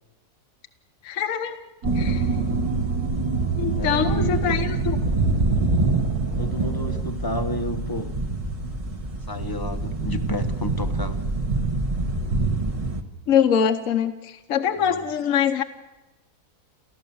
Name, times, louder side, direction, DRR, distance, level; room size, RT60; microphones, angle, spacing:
voice 1, 1.0-1.6 1.9-2.3 3.6-5.0 13.3-15.6, left 8 dB, 60° left, 1.3 m, -23 dB
sound 1, 1.8-13.0, right 2 dB, 25° right, 1.3 m, -26 dB
sound 2, 1.8-7.0, right 5 dB, 75° right, 1.7 m, -28 dB
voice 2, 3.7-4.6 6.4-8.2 9.3-11.2 14.8-15.0, left 1 dB, 15° left, 0.9 m, -31 dB
29.5 x 14.5 x 7.1 m
omnidirectional pair, 1.6 m